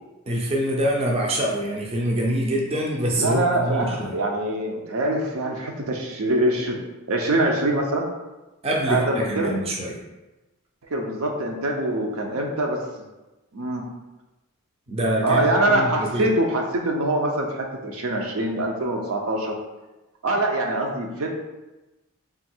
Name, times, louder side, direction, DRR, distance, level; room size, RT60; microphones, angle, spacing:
voice 1, 0.3-4.2 8.6-10.0 14.9-16.3, equal, 25° right, -2 dB, 0.5 m, -25 dB
voice 2, 3.2-6.8 7.1-8.0 8.9-9.5 10.9-12.8 13.5-13.8 15.2-19.6 20.2-21.3, right 1 dB, 70° right, 1 dB, 0.6 m, -24 dB
3.7 x 2.3 x 4.4 m, 1.1 s
head